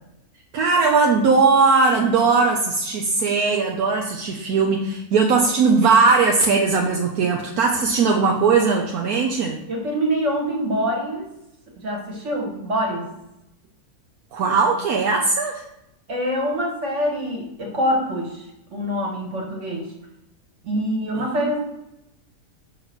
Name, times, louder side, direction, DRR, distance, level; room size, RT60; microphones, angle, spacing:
voice 1, 0.5-9.6 14.3-15.6 21.2-21.5, right 4 dB, 75° right, 2 dB, 1.2 m, -19 dB
voice 2, 9.7-11.3 11.8-13.1 16.1-19.9 20.6-21.6, equal, 50° right, 0 dB, 2.1 m, -25 dB
6.5 x 4.1 x 6.0 m, 0.87 s
omnidirectional pair, 1.7 m